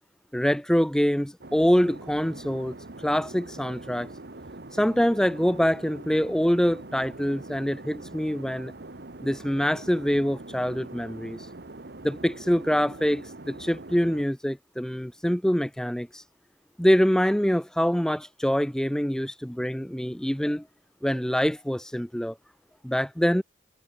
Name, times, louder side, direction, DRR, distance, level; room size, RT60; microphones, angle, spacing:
voice 1, 0.3-2.7 3.0-4.1 4.8-8.7 9.2-11.4 12.0-16.2 16.8-20.6 21.0-22.3 22.8-23.4, equal, 5° left, 0.7 m, -25 dB
sound 1, 1.4-14.2, right 2 dB, 65° right, 1.5 m, -43 dB
head